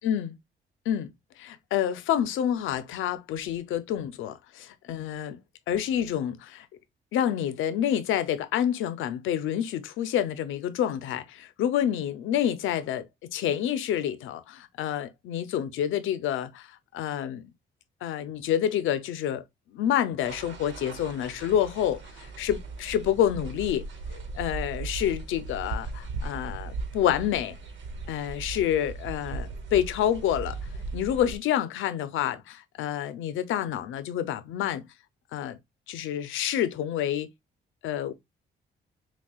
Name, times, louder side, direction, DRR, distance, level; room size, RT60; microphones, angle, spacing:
voice 1, 0.0-0.4 0.9-1.1 1.4-5.4 5.7-6.7 7.1-17.5 18.0-19.4 19.7-23.9 24.3-27.6 28.1-30.6 30.9-34.8 35.3-35.6 35.9-37.3 37.8-38.1, left 10 dB, 85° left, 0.6 m, -28 dB
sound 1, 20.2-31.4, right 3 dB, 70° right, 1.2 m, -38 dB
5.9 x 2.3 x 2.3 m
cardioid pair, 90°, 20 cm